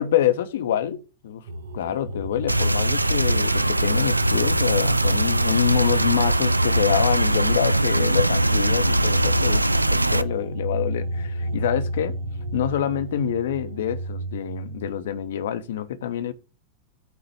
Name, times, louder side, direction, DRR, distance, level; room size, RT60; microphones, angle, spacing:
voice 1, 0.0-1.5 1.7-12.1 12.5-16.3, left 10 dB, 60° left, 1.0 m, -26 dB
sound 1, 1.5-14.9, equal, 60° right, 1.1 m, -32 dB
sound 2, 2.5-10.2, right 1 dB, 85° right, 0.4 m, -21 dB
9.2 x 3.9 x 7.1 m
figure-of-eight pair, 90°, 0 cm